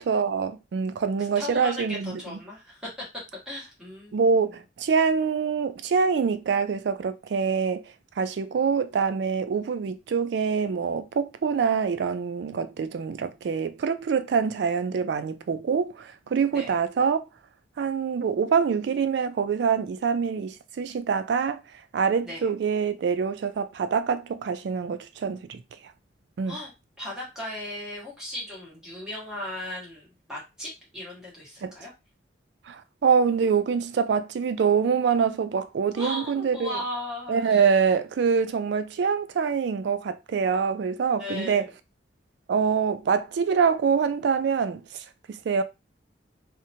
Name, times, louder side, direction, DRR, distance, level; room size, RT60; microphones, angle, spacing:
voice 1, 0.1-2.2 4.1-7.8 8.2-17.2 17.8-21.6 21.9-25.6 26.4-26.6 31.6-31.7 32.7-36.8 37.3-41.7 42.5-45.6, right 6 dB, 65° right, 0.3 m, -25 dB
voice 2, 1.3-2.9 3.4-4.5 16.5-16.8 22.2-22.5 26.4-26.7 27.0-31.9 36.0-37.7 41.2-41.7, left 1 dB, 5° right, 1.2 m, -37 dB
2.7 x 2.1 x 2.7 m
head